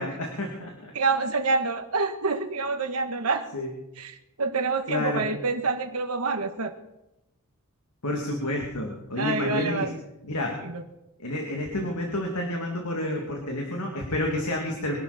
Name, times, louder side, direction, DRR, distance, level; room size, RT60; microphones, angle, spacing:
voice 1, 0.0-0.9 3.5-3.7 4.9-5.3 8.0-9.9 10.2-10.6 11.2-14.9, left 1 dB, 85° left, 0 dB, 2.8 m, -29 dB
voice 2, 0.9-3.5 4.0-4.1 4.4-6.7 9.2-9.9 10.6-10.8, right 3 dB, 85° right, 7 dB, 1.6 m, -27 dB
23.5 x 12.0 x 4.4 m, 0.91 s
head